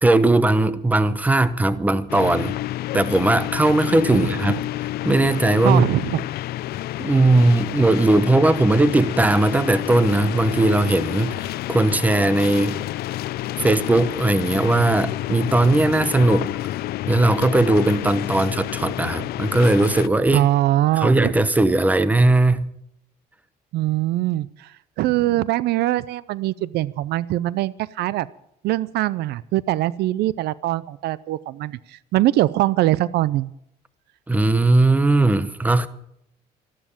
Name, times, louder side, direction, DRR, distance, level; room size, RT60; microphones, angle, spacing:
voice 1, 0.0-2.5 2.9-4.6 5.0-5.8 7.0-12.8 13.6-16.5 17.1-20.5 21.0-22.7 34.3-35.9, right 2 dB, 10° right, 0.9 m, -18 dB
sound 1, 2.1-20.1, left 15 dB, 70° left, 0.5 m, -29 dB
voice 2, 5.6-6.2 20.3-21.3 23.7-24.7 25.0-28.3 28.6-33.5, right 15 dB, 75° right, 0.5 m, -22 dB
13.5 x 12.0 x 7.2 m
cardioid pair, 110°, 17 cm